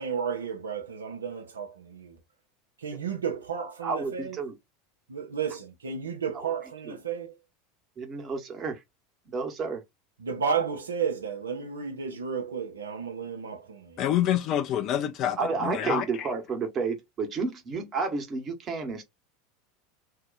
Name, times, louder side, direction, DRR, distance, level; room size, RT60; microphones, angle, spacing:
voice 1, 0.0-2.2 2.8-4.4 5.1-7.3 10.2-14.0, right 6 dB, 80° right, 0.8 m, -32 dB
voice 2, 3.8-4.6 6.3-6.5 6.9-7.0 8.0-8.8 9.3-9.8 15.2-19.0, right 4 dB, 35° right, 1.2 m, -31 dB
voice 3, 14.0-16.0, left 11 dB, 45° left, 0.4 m, -27 dB
2.8 x 2.3 x 3.9 m
figure-of-eight pair, 80°, 0 cm